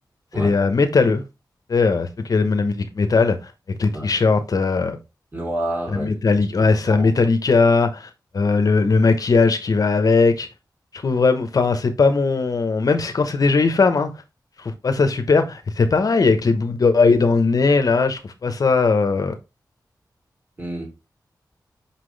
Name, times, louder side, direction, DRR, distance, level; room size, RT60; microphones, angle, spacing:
voice 1, 0.4-1.2 1.7-3.5 3.8-5.0 5.9-8.1 8.3-10.5 10.9-14.2 14.6-19.4, left 4 dB, 55° left, 1.0 m, -19 dB
voice 2, 5.3-6.1 6.6-7.1 20.6-20.9, right 1 dB, 30° right, 4.3 m, -29 dB
6.0 x 5.8 x 3.3 m
wide cardioid pair, 135°, 7 cm